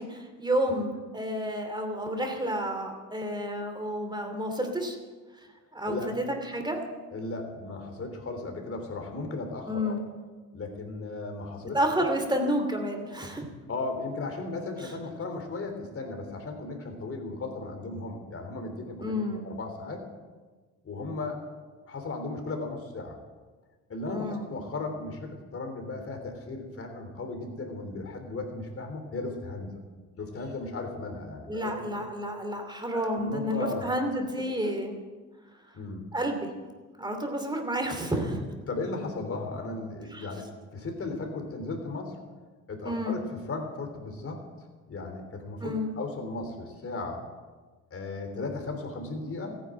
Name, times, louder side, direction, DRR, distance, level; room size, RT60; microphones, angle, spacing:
voice 1, 0.0-5.0 5.7-6.8 9.7-10.0 11.7-13.4 19.0-19.4 24.0-24.5 31.5-35.0 36.1-36.5 37.0-38.5 40.1-40.3 42.8-43.2 45.6-45.9, equal, 15° right, 4 dB, 2.7 m, -30 dB
voice 2, 7.1-10.0 10.5-11.8 12.2-12.3 13.7-20.0 20.8-21.4 21.8-23.1 23.9-29.7 30.2-32.0 32.9-34.1 34.6-34.7 35.7-36.0 38.7-42.2 42.7-44.4 44.9-47.2 47.9-49.6, left 3 dB, 45° left, 4 dB, 3.4 m, -36 dB
15.0 x 9.9 x 7.9 m, 1.3 s
cardioid pair, 90°, 30 cm